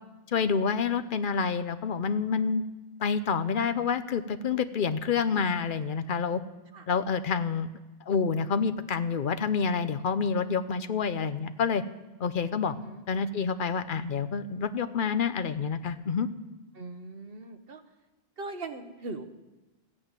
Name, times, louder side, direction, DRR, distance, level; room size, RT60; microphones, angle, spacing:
voice 1, 0.3-2.6 3.0-6.4 6.9-7.7 8.1-11.8 12.2-12.7 13.1-16.3, left 6 dB, 55° left, 12 dB, 0.9 m, -28 dB
voice 2, 12.7-13.0 16.8-17.8 18.4-19.2, right 3 dB, 65° right, 7 dB, 1.4 m, -39 dB
14.0 x 8.7 x 9.0 m, 1.1 s
omnidirectional pair, 1.1 m